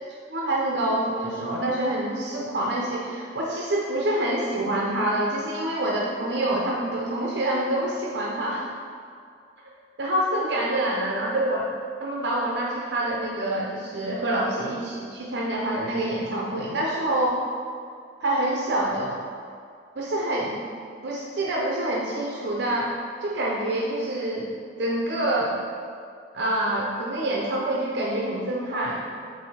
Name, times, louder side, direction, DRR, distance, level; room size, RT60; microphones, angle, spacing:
voice 1, 0.3-8.7 10.0-11.7 12.0-17.4 18.2-19.2 20.0-20.6 21.0-23.0 23.2-24.5 24.8-25.6 26.3-29.0, right 1 dB, 70° right, -3 dB, 0.6 m, -26 dB
4.8 x 4.0 x 5.5 m, 2.3 s
head